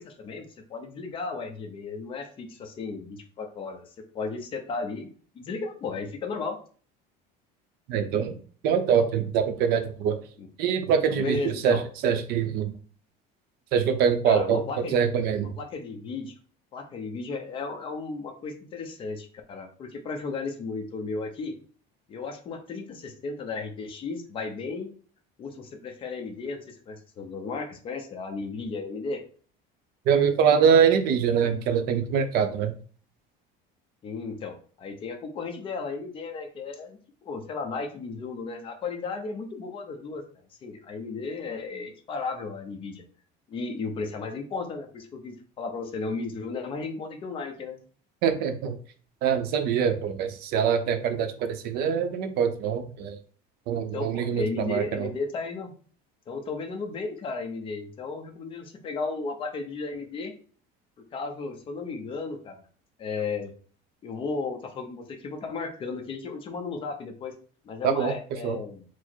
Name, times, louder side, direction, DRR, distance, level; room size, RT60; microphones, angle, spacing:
voice 1, 0.0-5.1 5.3-6.6 10.4-10.5 11.1-11.8 14.2-15.0 15.6-16.3 16.7-21.5 22.1-24.9 25.4-29.2 34.0-40.2 40.6-43.0 43.5-47.8 53.7-55.7 56.3-60.3 61.1-62.6 63.0-63.5 64.0-67.3 67.6-68.8, left 4 dB, 25° left, 4 dB, 0.6 m, -34 dB
voice 2, 7.9-8.4 8.6-10.2 10.6-11.4 11.6-12.7 13.7-14.6 14.9-15.5 30.1-32.7 48.2-48.8 49.2-53.2 53.7-55.1 67.8-68.1 68.4-68.6, right 7 dB, 55° right, 8 dB, 0.6 m, -24 dB
4.5 x 2.0 x 4.4 m, 0.43 s
cardioid pair, 175°, 20 cm